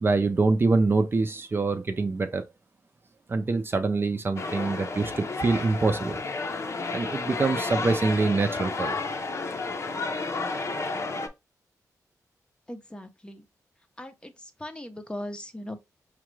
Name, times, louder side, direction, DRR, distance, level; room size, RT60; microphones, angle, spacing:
voice 1, 0.0-2.4 3.3-6.2 6.9-9.0, right 3 dB, 35° right, 0.6 m, -25 dB
sound 1, 4.4-11.3, left 3 dB, 50° left, 0.7 m, -31 dB
voice 2, 12.7-13.4 14.0-14.3 14.6-15.8, left 1 dB, 15° left, 0.7 m, -38 dB
5.0 x 2.3 x 3.1 m
cardioid pair, 85°, 6 cm